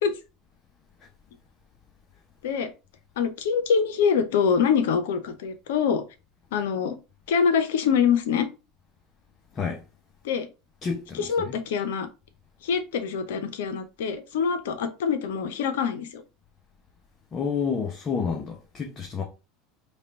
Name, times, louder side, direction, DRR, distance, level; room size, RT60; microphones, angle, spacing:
voice 1, 3.2-6.0 6.5-7.0 7.3-8.5 10.2-10.5 11.2-12.1 12.6-16.2, left 6 dB, 65° left, 0.8 m, -24 dB
voice 2, 10.8-11.6 17.3-19.2, left 6 dB, 35° left, 0.9 m, -29 dB
5.2 x 2.4 x 3.9 m
figure-of-eight pair, 75°, 0 cm